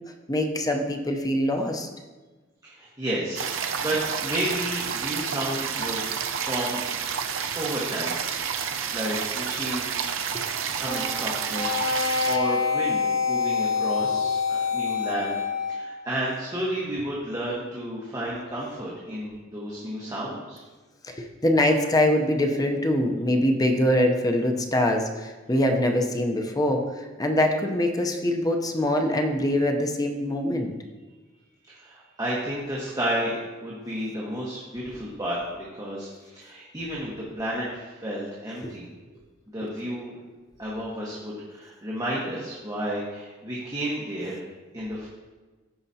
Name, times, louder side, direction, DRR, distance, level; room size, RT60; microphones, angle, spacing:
voice 1, 0.3-1.9 21.0-30.7 38.6-38.8, left 1 dB, 20° left, 3 dB, 0.6 m, -24 dB
voice 2, 2.6-6.0 6.3-6.8 7.5-8.2 8.5-10.1 10.7-11.7 12.3-15.4 15.7-20.6 31.7-35.4 35.8-38.9 39.5-40.1 40.6-44.4 44.7-45.1, right 1 dB, 20° right, -6 dB, 1.2 m, -32 dB
sound 1, 3.4-12.4, right 7 dB, 90° right, 0.6 m, -30 dB
sound 2, 10.8-15.9, left 5 dB, 80° left, 1.8 m, -26 dB
14.5 x 5.0 x 2.8 m, 1.3 s
head